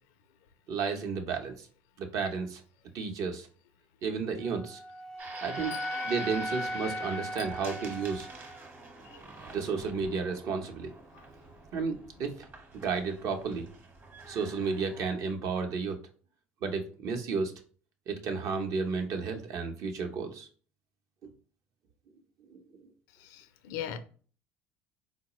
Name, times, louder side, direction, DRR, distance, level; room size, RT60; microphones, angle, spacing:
voice 1, 0.7-1.7 2.0-2.6 2.9-3.5 4.0-4.8 5.4-5.8 6.0-8.3 9.5-10.9 11.7-12.4 12.8-13.7 14.3-16.0 16.6-17.5 18.1-20.5 22.5-22.6, right 5 dB, 60° right, 0.7 m, -32 dB
Wind instrument woodwind instrument, 4.4-8.6, left 1 dB, 10° left, 0.4 m, -37 dB
sound 1, 5.2-15.1, right 3 dB, 35° right, 1.0 m, -47 dB
voice 2, 23.2-24.0, left 10 dB, 75° left, 0.4 m, -38 dB
3.9 x 2.1 x 2.9 m
supercardioid pair, 85°, 6 cm